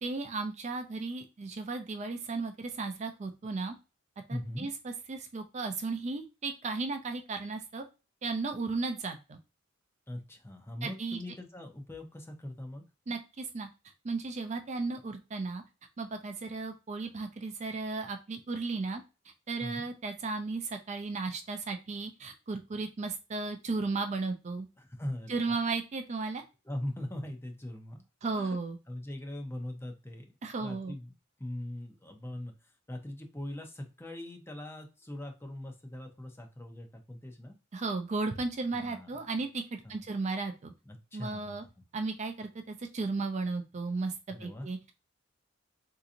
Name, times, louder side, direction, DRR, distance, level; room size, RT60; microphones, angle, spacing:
voice 1, 0.0-3.8 4.3-7.8 8.2-9.4 10.8-11.2 13.1-13.7 14.0-15.6 16.0-19.0 19.5-24.7 25.3-26.4 28.2-28.8 30.4-30.9 37.7-40.7 41.1-41.6 41.9-44.1 44.4-44.9, right 3 dB, 35° right, 6 dB, 0.4 m, -35 dB
voice 2, 4.3-4.7 10.1-12.8 19.6-19.8 24.8-25.6 26.6-28.0 28.3-28.6 28.9-30.3 30.6-31.1 31.4-32.5 32.9-37.5 38.7-39.2 39.8-39.9 40.9-41.7 44.3-44.7, left 1 dB, 15° left, 3 dB, 0.6 m, -41 dB
3.8 x 2.8 x 2.5 m, 0.29 s
head